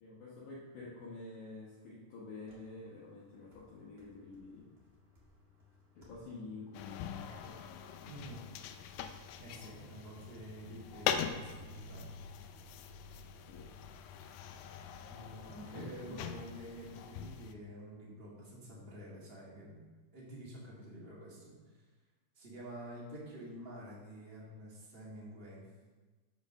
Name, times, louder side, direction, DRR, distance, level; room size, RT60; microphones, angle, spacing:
voice 1, 0.0-4.7 5.9-7.6 13.5-13.7 15.7-16.2, left 3 dB, 65° left, -6 dB, 2.1 m, -49 dB
sound 1, 2.4-7.8, left 3 dB, 50° right, 0.7 m, -65 dB
sound 2, 6.7-17.5, left 8 dB, 90° left, 2.6 m, -42 dB
voice 2, 8.0-8.4 9.4-12.1 14.5-14.6 14.9-21.5 22.3-25.7, equal, 25° right, -6 dB, 1.2 m, -49 dB
7.1 x 5.3 x 6.3 m, 1.3 s
omnidirectional pair, 4.6 m